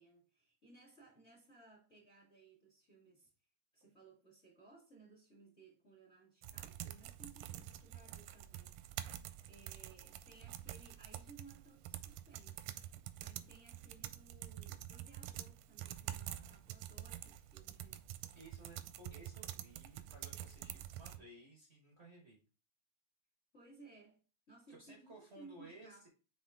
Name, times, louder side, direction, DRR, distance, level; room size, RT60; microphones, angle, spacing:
voice 1, 0.0-3.3 3.7-9.1 9.5-12.7 13.2-18.1 23.5-26.1, right 3 dB, 25° left, 1.5 m, -61 dB
sound 1, 6.4-21.2, right 13 dB, 90° right, 2.1 m, -47 dB
voice 2, 16.2-16.6 18.3-22.4 24.7-26.1, right 2 dB, 65° right, 0.6 m, -57 dB
6.3 x 4.2 x 3.5 m
omnidirectional pair, 3.6 m